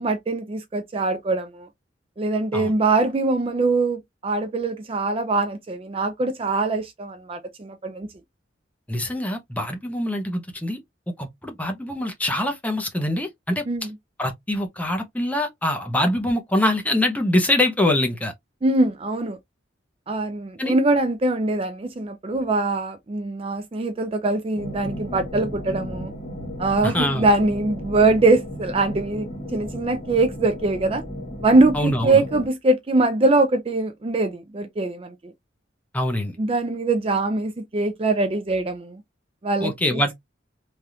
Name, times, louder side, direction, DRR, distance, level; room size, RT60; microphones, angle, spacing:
voice 1, 0.0-1.7 2.2-8.1 13.7-13.9 18.6-19.4 20.1-26.1 26.6-31.0 31.4-35.3 36.4-39.0 39.4-40.0, right 2 dB, 30° right, 0.4 m, -22 dB
voice 2, 8.9-10.8 11.2-13.6 14.2-18.3 20.6-20.7 26.8-27.3 31.7-32.2 35.9-36.4 39.6-40.1, left 1 dB, 10° left, 0.7 m, -24 dB
sound 1, 24.6-32.5, equal, 30° left, 1.0 m, -34 dB
3.3 x 2.4 x 2.7 m
head